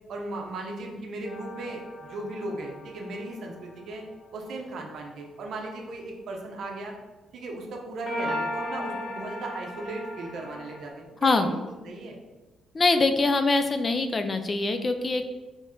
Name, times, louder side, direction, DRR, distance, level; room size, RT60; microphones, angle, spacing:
voice 1, 0.1-4.0 4.3-6.9 7.3-11.6 11.8-12.2, right 2 dB, 65° right, 1 dB, 0.8 m, -37 dB
sound 1, 1.2-4.8 8.1-10.9, left 1 dB, 50° left, 1.2 m, -37 dB
voice 2, 12.7-15.3, left 3 dB, 35° left, 8 dB, 0.4 m, -23 dB
4.1 x 3.2 x 3.8 m, 1.2 s
cardioid pair, 90°, 0 cm